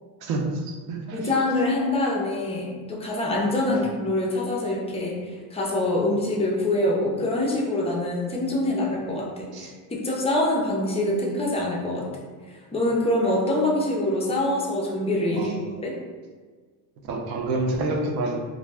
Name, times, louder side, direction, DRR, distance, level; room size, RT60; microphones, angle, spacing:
voice 1, 0.2-1.3 9.5-9.7 15.3-15.6 17.1-18.4, right 2 dB, 60° right, 1 dB, 0.6 m, -28 dB
voice 2, 1.1-12.0 12.5-15.6 15.8-15.9, left 1 dB, 15° left, -3 dB, 0.3 m, -25 dB
2.4 x 2.0 x 3.3 m, 1.5 s
cardioid pair, 140°, 41 cm